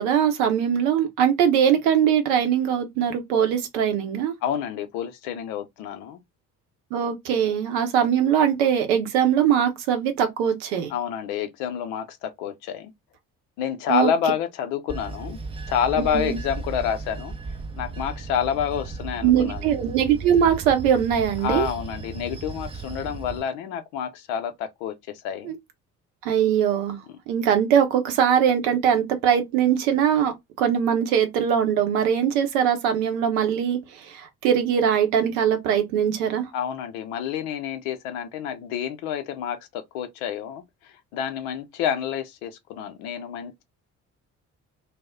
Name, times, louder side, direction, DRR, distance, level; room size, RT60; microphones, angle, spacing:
voice 1, 0.0-4.3 6.9-10.9 13.9-14.1 16.0-16.4 19.2-21.7 25.4-25.5 26.2-27.0 27.3-36.5, right 8 dB, 65° right, 0.7 m, -21 dB
voice 2, 4.4-6.2 10.9-12.9 13.6-15.4 15.7-17.3 17.8-19.6 21.4-24.9 25.2-25.5 36.5-40.6 41.1-43.6, left 8 dB, 60° left, 0.6 m, -28 dB
Bell / Train, 14.9-23.4, right 4 dB, 15° right, 0.4 m, -35 dB
2.3 x 2.0 x 3.4 m
figure-of-eight pair, 45°, 43 cm